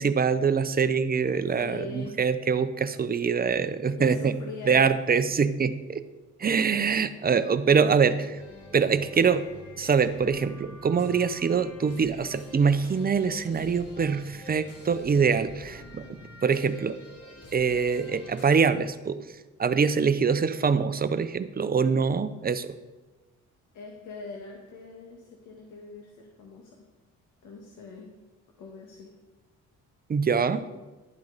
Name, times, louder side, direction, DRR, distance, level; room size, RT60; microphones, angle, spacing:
voice 1, 0.0-4.3 4.7-6.0 6.4-8.2 8.7-9.5 9.8-16.0 16.4-17.0 17.5-19.2 19.6-22.8 30.1-30.7, right 6 dB, 30° right, 11 dB, 0.7 m, -24 dB
voice 2, 1.5-2.2 4.0-4.8 8.0-8.3 23.7-26.8 27.4-28.1 28.6-29.1, left 3 dB, 80° left, 0 dB, 1.7 m, -42 dB
sound 1, 8.3-18.7, left 1 dB, 50° left, 2.6 m, -47 dB
12.0 x 8.5 x 4.0 m, 1.2 s
cardioid pair, 90°, 30 cm